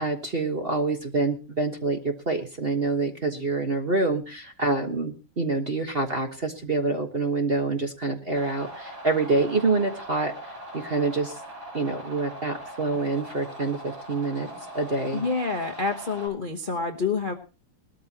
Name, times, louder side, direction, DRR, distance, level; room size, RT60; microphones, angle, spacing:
voice 1, 0.0-11.4 11.7-14.5 14.7-15.2, right 3 dB, 30° right, 4 dB, 1.2 m, -26 dB
sound 1, 8.3-16.3, equal, 65° right, 8.1 m, -41 dB
voice 2, 15.1-17.4, left 4 dB, 35° left, 4 dB, 0.9 m, -27 dB
20.0 x 13.0 x 2.9 m, 0.33 s
omnidirectional pair, 2.4 m